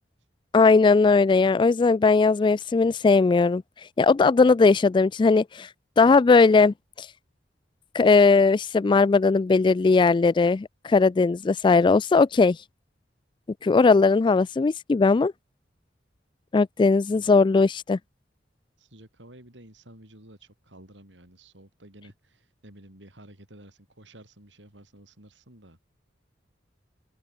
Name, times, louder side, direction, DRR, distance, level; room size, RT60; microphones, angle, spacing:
voice 1, 0.5-3.6 4.0-5.7 6.0-7.1 7.9-12.6 13.6-15.3 16.5-18.0, left 4 dB, 25° left, 0.3 m, -19 dB
voice 2, 18.8-25.8, right 1 dB, 90° right, 6.5 m, -51 dB
open air
head